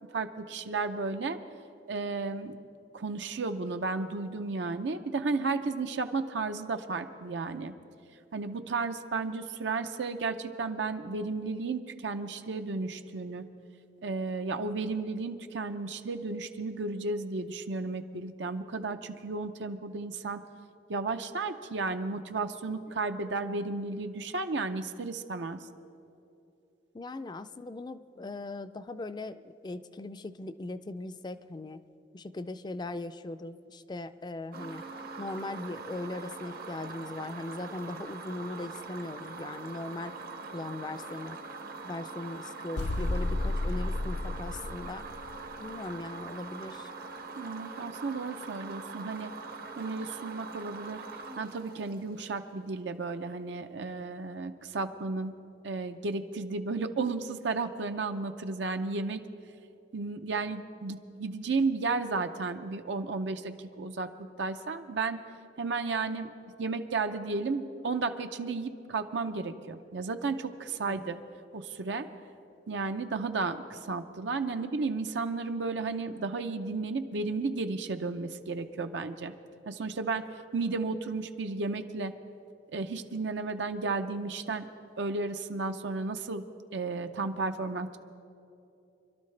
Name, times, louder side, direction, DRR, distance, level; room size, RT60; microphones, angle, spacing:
voice 1, 0.0-1.4 1.9-2.6 2.9-7.7 8.3-13.5 14.0-20.4 20.9-25.6 47.4-49.3 49.8-51.0 51.4-55.3 55.6-59.3 59.9-64.1 64.4-65.2 65.6-66.3 66.6-71.2 71.5-72.1 72.7-79.3 79.7-82.1 82.7-84.7 85.0-86.4 86.7-88.0, right 3 dB, 75° right, 7 dB, 0.6 m, -33 dB
voice 2, 26.9-31.8 32.1-34.8 35.2-40.2 40.5-41.4 41.8-45.1 45.6-46.9 70.8-71.1, left 2 dB, 25° left, 12 dB, 0.4 m, -39 dB
sound 1, 34.5-52.5, right 4 dB, 55° right, 0.9 m, -43 dB
sound 2, 42.8-45.5, left 2 dB, 75° left, 0.6 m, -32 dB
25.5 x 12.0 x 3.3 m, 2.7 s
head